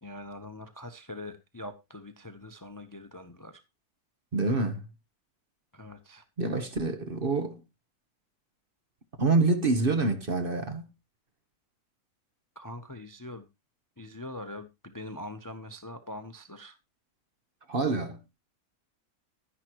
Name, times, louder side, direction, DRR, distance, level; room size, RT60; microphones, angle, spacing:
voice 1, 0.0-3.6 5.7-6.2 12.6-13.5 14.0-16.8, left 1 dB, 15° left, 0.7 m, -43 dB
voice 2, 4.3-4.9 6.4-7.6 9.2-10.9 17.7-18.2, right 3 dB, 40° right, 1.2 m, -27 dB
11.5 x 10.5 x 3.0 m
omnidirectional pair, 1.6 m